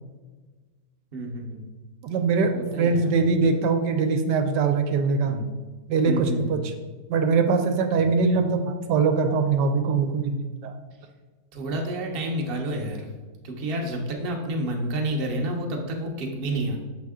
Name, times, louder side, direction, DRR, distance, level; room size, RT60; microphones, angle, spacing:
voice 1, 1.1-1.6 2.5-3.5 5.3-5.5 6.0-6.6 7.9-8.2 11.5-13.1 13.4-16.8, right 1 dB, 45° right, 1 dB, 0.9 m, -30 dB
voice 2, 2.0-5.4 5.9-6.7 7.1-10.7, right 4 dB, 85° right, 6 dB, 1.3 m, -22 dB
6.5 x 4.3 x 3.6 m, 1.3 s
omnidirectional pair, 1.8 m